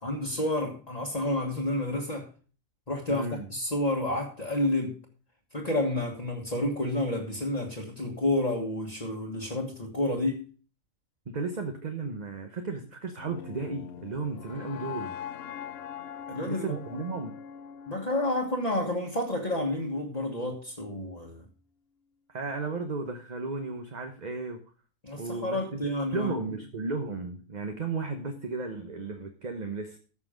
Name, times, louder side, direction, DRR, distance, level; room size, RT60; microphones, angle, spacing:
voice 1, 0.0-2.3 2.9-5.0 5.5-10.5 16.3-16.8 17.9-21.4 25.0-26.5, left 1 dB, 30° left, 1.6 m, -30 dB
voice 2, 3.1-3.5 11.3-15.2 16.5-17.4 22.3-24.6 25.2-25.6 26.1-30.0, right 3 dB, 35° right, 1.1 m, -34 dB
sound 1, 13.2-19.3, left 9 dB, 60° left, 0.8 m, -42 dB
14.5 x 6.2 x 5.0 m
omnidirectional pair, 1.4 m